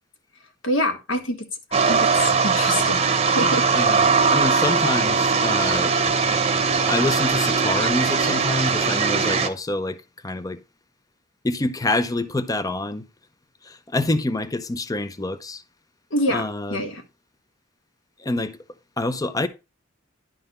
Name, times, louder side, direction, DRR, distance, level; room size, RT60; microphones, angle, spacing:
voice 1, 0.6-1.4 1.7-3.6 16.1-16.5 16.7-17.0, left 1 dB, 70° left, 1.6 m, -26 dB
sound 1, 1.7-9.5, right 5 dB, 30° right, 0.8 m, -20 dB
voice 2, 3.4-5.9 6.9-10.6 11.4-13.1 13.6-15.6 16.3-16.9 18.2-18.6 19.0-19.5, left 2 dB, 20° left, 0.5 m, -27 dB
11.0 x 3.9 x 5.3 m
head